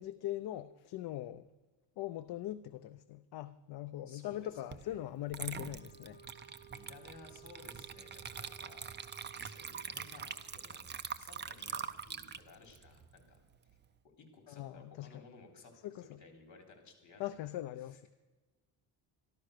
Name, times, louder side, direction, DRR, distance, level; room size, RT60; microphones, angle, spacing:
voice 1, 0.0-1.5 2.0-6.2 14.5-15.2 15.8-16.2 17.2-18.1, left 13 dB, 60° left, 0.6 m, -41 dB
voice 2, 4.1-5.0 6.7-8.9 9.4-13.4 14.2-17.5, left 4 dB, 40° left, 3.6 m, -57 dB
Water / Liquid, 4.7-4.9 5.3-13.8, right 7 dB, 25° right, 0.5 m, -44 dB
sound 1, 5.7-10.6, right 8 dB, 15° left, 2.3 m, -59 dB
14.0 x 11.5 x 6.5 m
cardioid pair, 145°, 44 cm